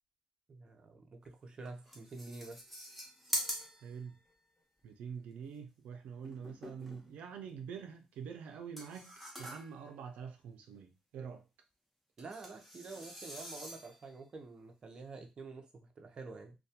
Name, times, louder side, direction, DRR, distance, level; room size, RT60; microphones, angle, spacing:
voice 1, 0.5-2.6 12.2-16.5, right 3 dB, 40° right, 0.5 m, -48 dB
sound 1, 1.2-1.3 1.7-4.3 6.2-7.3 8.8-9.9 12.2-14.1, equal, ahead, 0.7 m, -43 dB
voice 2, 3.8-4.1 4.8-11.4, right 6 dB, 90° right, 0.4 m, -46 dB
2.2 x 2.1 x 2.7 m
cardioid pair, 125°, 2 cm